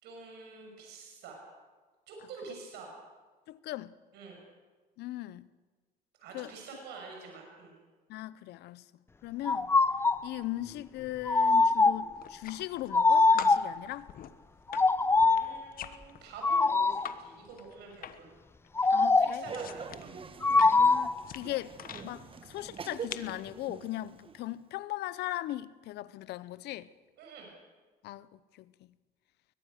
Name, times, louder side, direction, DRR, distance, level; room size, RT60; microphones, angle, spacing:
voice 1, 0.0-1.4 2.1-2.9 4.1-4.4 6.2-7.7 15.2-18.3 19.2-20.1 27.2-27.5, right 4 dB, 80° right, 6.3 m, -47 dB
voice 2, 3.5-3.9 5.0-5.5 6.3-6.5 8.1-8.8 9.2-9.7 10.2-14.1 18.9-19.5 20.7-21.7 22.0-26.9 28.0-28.7, left 15 dB, 80° left, 0.8 m, -38 dB
sound 1, 9.5-10.3 11.3-12.2 12.9-13.8 14.7-15.6 16.4-17.1 18.8-19.5 20.4-21.2, left 3 dB, 15° left, 0.5 m, -23 dB
sound 2, 12.2-13.1 13.4-17.2 17.5-18.4 18.6-22.1 22.7-23.4, left 10 dB, 60° left, 1.2 m, -44 dB
Laughter, 19.4-24.5, right 5 dB, 30° right, 1.3 m, -44 dB
22.5 x 20.0 x 6.6 m
cardioid pair, 110°, 17 cm